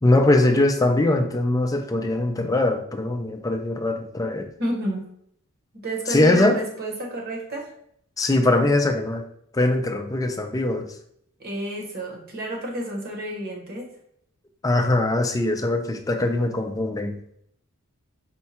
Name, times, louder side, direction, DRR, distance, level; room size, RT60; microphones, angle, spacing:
voice 1, 0.0-4.5 6.1-6.6 8.2-9.2 9.5-10.9 14.6-17.2, left 2 dB, 15° left, 5 dB, 0.4 m, -21 dB
voice 2, 4.6-5.1 5.8-7.7 11.4-13.8, right 1 dB, 45° right, -1 dB, 1.1 m, -30 dB
4.5 x 2.2 x 4.2 m, 0.70 s
head